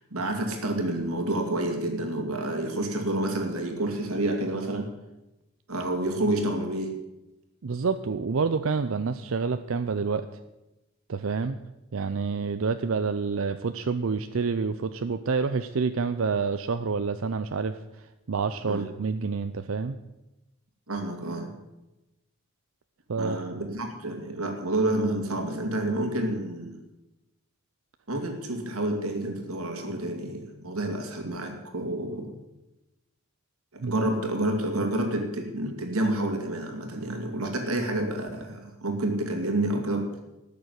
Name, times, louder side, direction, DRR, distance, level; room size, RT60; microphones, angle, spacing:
voice 1, 0.1-4.9 5.7-6.9 18.6-18.8 20.9-21.6 23.2-26.8 28.1-32.3 33.7-40.2, right 1 dB, 90° right, 4 dB, 2.6 m, -29 dB
voice 2, 7.6-10.3 11.1-11.6 11.9-17.8 18.3-20.0 23.1-23.4 33.8-34.0, right 4 dB, 70° right, 10 dB, 0.5 m, -28 dB
13.5 x 6.8 x 9.5 m, 0.97 s
head